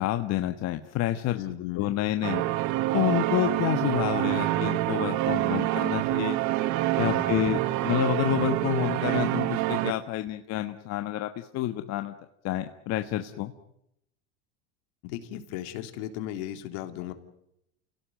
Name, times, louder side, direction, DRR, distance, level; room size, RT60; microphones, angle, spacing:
voice 1, 0.0-1.4 1.8-2.5 2.9-6.4 6.9-12.1 12.4-13.5, left 14 dB, 50° left, 8 dB, 1.4 m, -29 dB
voice 2, 1.3-2.0 7.0-7.6 15.0-17.1, left 13 dB, 70° left, 8 dB, 3.4 m, -36 dB
sound 1, 2.2-9.9, right 16 dB, 55° right, 1.3 m, -26 dB
29.0 x 17.5 x 9.4 m, 0.81 s
supercardioid pair, 115°, 35 cm